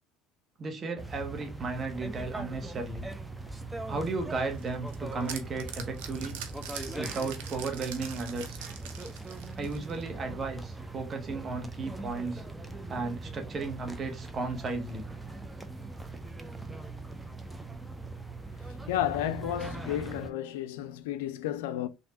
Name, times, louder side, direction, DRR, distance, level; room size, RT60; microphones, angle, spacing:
voice 1, 0.6-3.1 3.9-6.4 7.0-8.6 9.6-12.4 12.9-15.0, right 3 dB, 40° right, 1.3 m, -35 dB
sound 1, 1.0-20.3, right 2 dB, 10° right, 0.6 m, -41 dB
sound 2, 4.6-10.1, right 8 dB, 75° right, 0.6 m, -43 dB
voice 2, 18.9-21.9, left 12 dB, 80° left, 0.4 m, -32 dB
3.4 x 2.7 x 4.0 m
hypercardioid pair, 65°, 0 cm